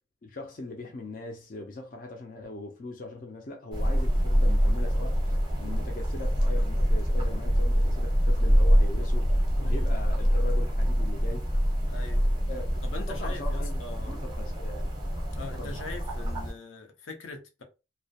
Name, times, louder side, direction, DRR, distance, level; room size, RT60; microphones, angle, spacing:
voice 1, 0.2-5.2 5.6-11.5 12.5-12.7 13.1-15.0 15.4-15.8, left 2 dB, 45° left, 0.4 m, -40 dB
sound 1, 3.7-16.5, equal, 20° right, 0.6 m, -25 dB
voice 2, 9.6-9.9 11.9-12.3 12.8-14.2 15.3-17.6, left 3 dB, 90° left, 0.6 m, -42 dB
2.3 x 2.1 x 2.7 m
head